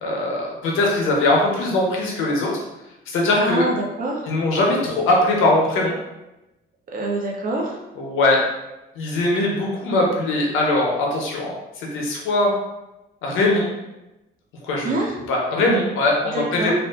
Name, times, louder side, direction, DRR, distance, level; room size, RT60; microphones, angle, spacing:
voice 1, 0.0-2.6 3.1-3.7 4.3-5.9 8.0-8.4 9.0-12.5 13.2-13.7 14.6-15.0 15.3-16.7, left 2 dB, 90° left, -2 dB, 0.7 m, -21 dB
voice 2, 3.4-4.3 6.9-7.8 14.8-15.1 16.3-16.7, right 2 dB, 45° right, 0 dB, 0.6 m, -25 dB
2.6 x 2.4 x 2.3 m, 0.97 s
cardioid pair, 90°, 20 cm